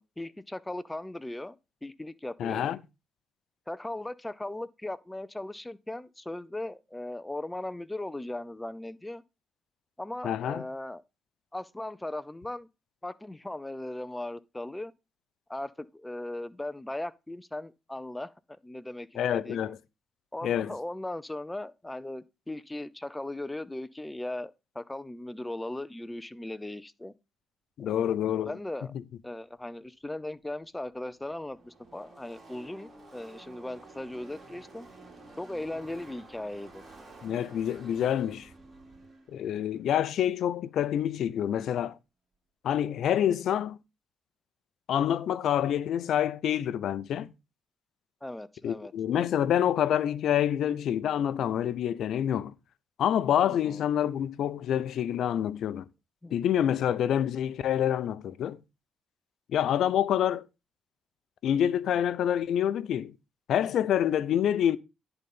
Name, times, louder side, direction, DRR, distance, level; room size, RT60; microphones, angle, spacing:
voice 1, 0.0-1.6 1.8-2.7 3.7-9.2 10.0-11.0 11.5-12.7 13.0-14.9 15.5-19.8 20.3-27.1 27.8-28.0 28.4-28.9 29.2-34.9 35.4-36.8 48.2-48.9 53.5-53.9 56.2-56.4, left 1 dB, 10° left, 0.6 m, -38 dB
voice 2, 2.4-2.8 10.2-10.6 19.2-19.8 20.4-20.8 27.8-28.5 37.2-38.5 39.3-42.0 42.6-43.8 44.9-47.3 48.6-52.5 53.0-55.9 56.3-58.6 59.5-60.4 61.4-63.2 63.5-64.8, left 10 dB, 70° left, 0.6 m, -27 dB
Car passing by / Race car auto racing, 30.5-41.1, right 2 dB, 35° right, 2.8 m, -52 dB
10.5 x 4.0 x 5.4 m
cardioid pair, 90°, 0 cm